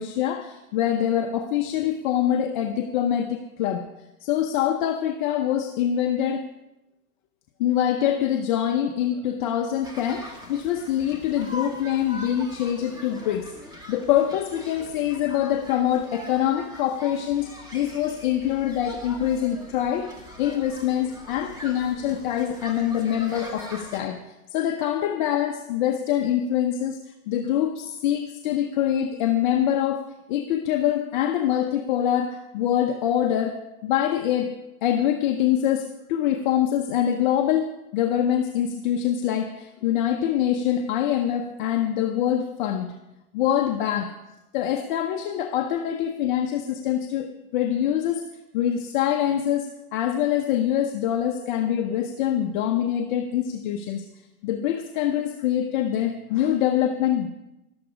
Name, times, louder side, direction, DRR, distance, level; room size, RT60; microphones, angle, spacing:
voice 1, 0.0-3.9 4.2-6.5 7.6-20.1 20.4-24.2 24.5-43.0 43.3-44.1 44.5-48.2 48.5-54.1 54.4-57.3, left 10 dB, 35° left, 4 dB, 0.7 m, -24 dB
sound 1, 9.8-24.0, left 1 dB, 10° right, 1.8 m, -42 dB
13.5 x 12.0 x 4.9 m, 0.97 s
hypercardioid pair, 150°, 44 cm